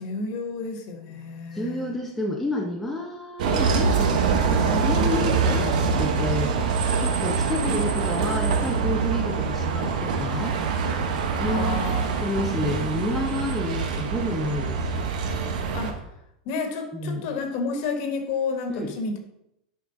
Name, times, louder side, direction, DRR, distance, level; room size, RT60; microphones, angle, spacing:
voice 1, 0.0-1.9 7.5-7.8 11.4-12.3 15.7-15.9 16.4-19.2, left 4 dB, 45° left, 5 dB, 1.5 m, -31 dB
voice 2, 1.5-6.6 7.0-10.6 11.4-15.1 16.9-17.3 18.7-19.0, left 1 dB, ahead, -1 dB, 0.7 m, -30 dB
Bus, 3.4-15.9, right 5 dB, 75° right, 1.3 m, -24 dB
11.0 x 4.9 x 4.0 m, 0.80 s
supercardioid pair, 165°, 4 cm